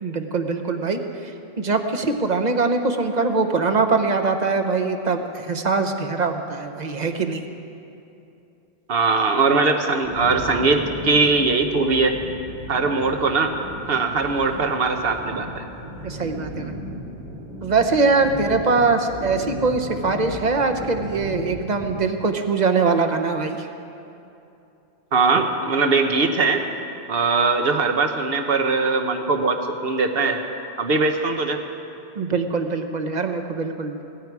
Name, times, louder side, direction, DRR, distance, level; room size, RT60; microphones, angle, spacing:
voice 1, 0.0-7.5 16.0-16.7 17.6-23.7 32.1-34.0, right 4 dB, 45° right, 6 dB, 1.0 m, -22 dB
voice 2, 8.9-12.2 12.7-13.5 13.9-15.6 25.1-26.6 27.1-30.4 30.8-31.6, right 4 dB, 65° right, 5 dB, 1.3 m, -20 dB
sound 1, 10.0-21.9, equal, 80° right, 2.5 m, -36 dB
17.5 x 14.5 x 4.8 m, 2.8 s
omnidirectional pair, 1.1 m